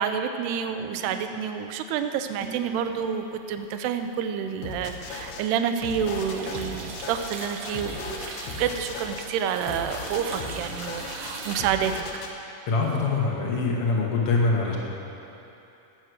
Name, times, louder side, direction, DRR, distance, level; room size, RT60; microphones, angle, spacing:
voice 1, 0.0-12.0, right 8 dB, 80° right, 7 dB, 2.7 m, -29 dB
sound 1, 0.6-1.4 2.4-3.4 5.8-6.9, right 4 dB, 45° right, 1.8 m, -41 dB
sound 2, 3.5-4.1 4.4-11.6, right 4 dB, 65° right, 2.1 m, -40 dB
sound 3, 4.6-5.4 5.8-9.3 9.7-12.3, left 4 dB, 80° left, 3.0 m, -37 dB
voice 2, 12.7-14.8, left 3 dB, 50° left, -2 dB, 1.9 m, -24 dB
17.0 x 8.0 x 6.4 m, 3.0 s
omnidirectional pair, 4.7 m